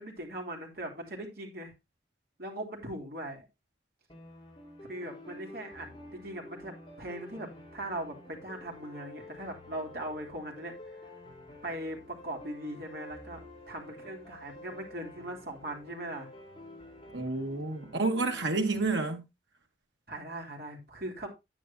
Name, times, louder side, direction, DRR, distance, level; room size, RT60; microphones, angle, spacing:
voice 1, 0.0-1.7 2.4-3.5 4.9-11.0 11.6-16.3 20.1-21.3, right 1 dB, 55° right, 3.2 m, -40 dB
sound 1, 4.1-18.9, left 1 dB, 25° left, 4.0 m, -49 dB
voice 2, 17.1-19.2, right 3 dB, 85° right, 1.8 m, -29 dB
10.0 x 9.5 x 2.7 m
head